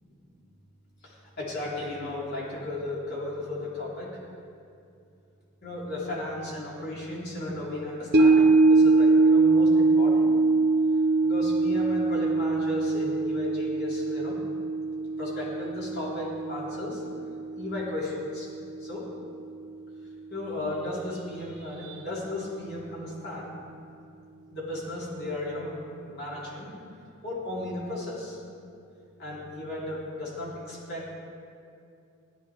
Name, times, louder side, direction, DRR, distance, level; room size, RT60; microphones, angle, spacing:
voice 1, 1.0-4.1 5.6-10.4 11.2-14.4 15.2-17.0 17.6-18.5 18.8-19.1 20.3-23.6 24.5-26.7 27.2-28.4 29.2-31.1, left 1 dB, 50° left, -7 dB, 3.7 m, -35 dB
sound 1, 8.1-18.5 18.9-19.0, right 3 dB, 50° right, 0.7 m, -23 dB
17.5 x 11.5 x 3.6 m, 2.5 s
head